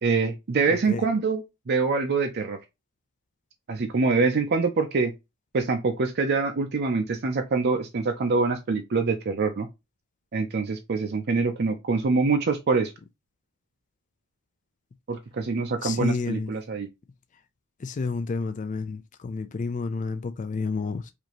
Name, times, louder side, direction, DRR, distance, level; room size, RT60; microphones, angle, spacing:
voice 1, 0.0-2.6 3.7-5.1 5.5-9.7 10.3-12.9 15.1-16.9, right 4 dB, 50° right, 0.5 m, -25 dB
voice 2, 15.8-16.5 17.8-21.1, left 4 dB, 35° left, 0.4 m, -30 dB
5.0 x 2.7 x 2.9 m
head